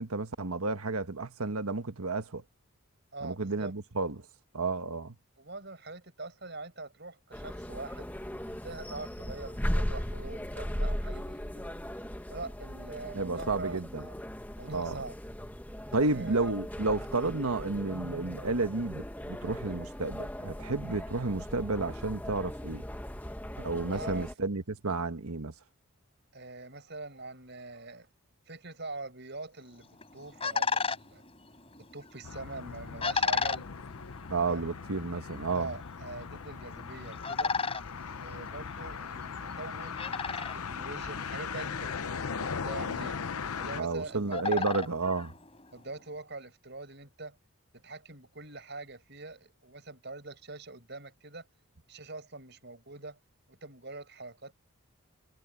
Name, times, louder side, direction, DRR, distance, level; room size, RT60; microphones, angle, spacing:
voice 1, 0.0-2.4 3.2-4.2 4.5-5.2 13.1-14.0 14.7-15.0 15.9-22.8 23.6-25.5 34.3-35.7 43.8-45.3, right 3 dB, 85° right, 1.4 m, -31 dB
voice 2, 3.1-3.7 5.4-8.1 8.5-11.7 12.3-14.1 14.6-15.2 16.0-16.5 23.9-24.3 26.3-28.1 28.5-31.2 31.8-33.6 34.4-34.7 35.5-37.5 38.1-43.2 43.6-44.6 45.7-47.4 47.7-51.5 51.9-53.2 53.5-54.5, right 2 dB, 50° right, 6.6 m, -43 dB
sound 1, 7.3-24.3, equal, 10° left, 1.0 m, -38 dB
sound 2, 29.7-46.0, left 4 dB, 25° left, 3.8 m, -37 dB
sound 3, 32.2-43.8, left 6 dB, 85° left, 0.8 m, -39 dB
head